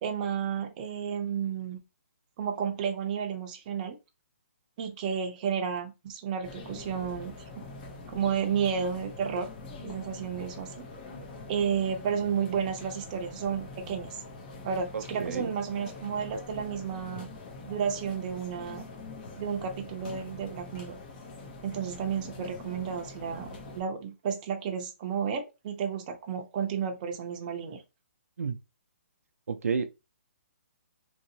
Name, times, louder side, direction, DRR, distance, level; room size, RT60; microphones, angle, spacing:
voice 1, 0.0-1.8 2.4-4.0 4.8-7.6 8.1-9.5 9.8-10.9 11.5-14.2 14.6-17.3 17.6-18.8 19.4-21.0 21.6-27.8, right 7 dB, 30° right, 0.6 m, -32 dB
sound 1, 6.4-23.8, left 3 dB, 35° left, 0.9 m, -44 dB
voice 2, 14.9-15.5 28.4-28.6 29.5-29.8, right 5 dB, 80° right, 0.5 m, -31 dB
3.0 x 2.7 x 2.7 m
hypercardioid pair, 155°, 8 cm